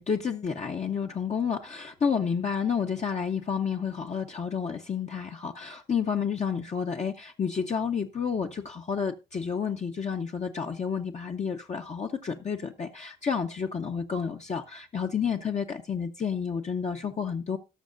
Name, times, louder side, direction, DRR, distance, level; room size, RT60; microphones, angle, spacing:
voice 1, 0.0-17.6, left 6 dB, 35° left, 0.8 m, -30 dB
18.0 x 6.3 x 2.6 m
cardioid pair, 90°, 20 cm